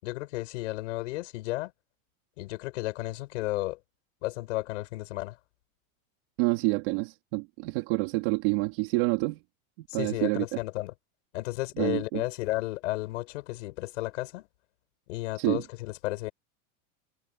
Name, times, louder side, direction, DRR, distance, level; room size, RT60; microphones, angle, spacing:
voice 1, 0.0-1.7 2.4-3.8 4.2-5.4 9.9-10.9 11.3-14.5 15.1-16.3, left 18 dB, 60° left, 7.4 m, -33 dB
voice 2, 6.4-9.4 9.9-10.4 11.8-12.2 15.4-15.6, right 24 dB, 45° right, 3.0 m, -27 dB
supercardioid pair, 180°, 41 cm